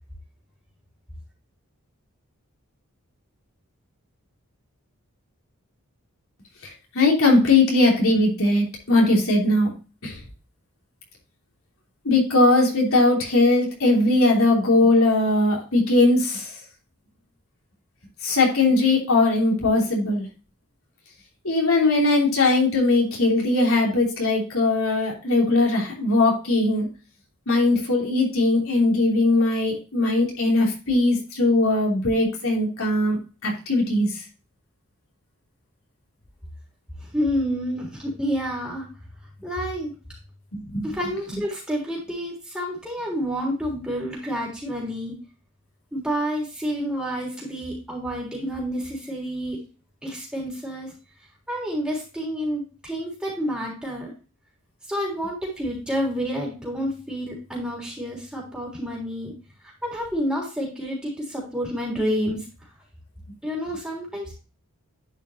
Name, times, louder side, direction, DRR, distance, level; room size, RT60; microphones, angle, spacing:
voice 1, 6.6-9.7 10.0-10.2 12.0-16.5 18.2-20.3 21.4-26.9 27.5-34.2 40.6-40.8, left 2 dB, 70° left, -1 dB, 3.1 m, -20 dB
voice 2, 37.0-38.9 39.4-39.9 40.8-45.1 45.9-49.6 50.0-50.9 51.5-54.1 54.9-59.3 59.6-62.5 63.4-64.3, equal, 5° right, -4 dB, 3.5 m, -29 dB
11.0 x 5.6 x 2.8 m, 0.34 s
head